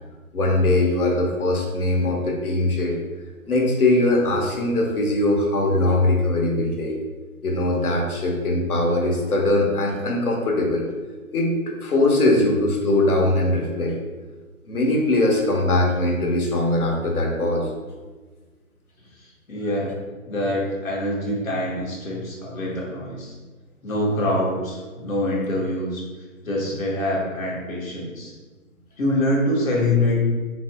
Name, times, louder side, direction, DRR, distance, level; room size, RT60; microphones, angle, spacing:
voice 1, 0.3-3.0 3.5-7.0 7.4-10.9 11.3-14.0 14.7-17.7 26.7-26.8, left 2 dB, 85° left, 1 dB, 1.2 m, -21 dB
voice 2, 19.2-19.9 20.2-23.3 23.8-26.0 26.4-28.3 29.0-30.3, left 1 dB, 65° left, -4 dB, 1.5 m, -25 dB
4.3 x 4.1 x 2.3 m, 1.3 s
hypercardioid pair, 165°, 43 cm